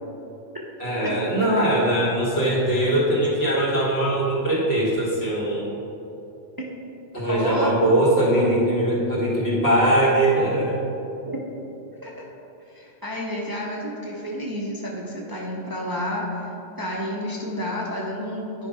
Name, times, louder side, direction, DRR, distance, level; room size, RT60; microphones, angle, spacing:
voice 1, 0.8-5.7 7.1-10.8, right 1 dB, 65° left, -6 dB, 2.2 m, -21 dB
voice 2, 7.3-7.7 8.3-8.6 11.3-11.4 12.0-12.3 12.7-16.5 16.8-18.7, equal, 20° right, -3 dB, 0.8 m, -30 dB
9.4 x 5.2 x 4.9 m, 2.9 s
omnidirectional pair, 1.2 m